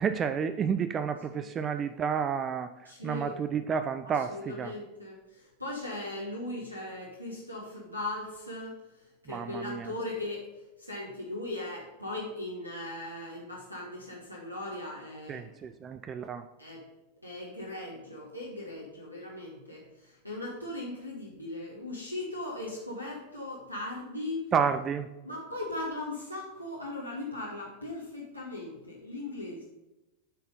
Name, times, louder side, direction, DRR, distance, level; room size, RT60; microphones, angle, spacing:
voice 1, 0.0-4.7 9.3-9.9 15.3-16.4 24.5-25.1, right 7 dB, 25° right, 9 dB, 0.4 m, -31 dB
voice 2, 2.8-3.3 4.3-8.8 9.2-10.5 10.8-15.5 16.6-16.9 17.2-24.5 25.2-29.7, left 2 dB, 90° right, -3 dB, 1.2 m, -38 dB
8.1 x 4.2 x 5.2 m, 1.0 s
figure-of-eight pair, 90°, 0 cm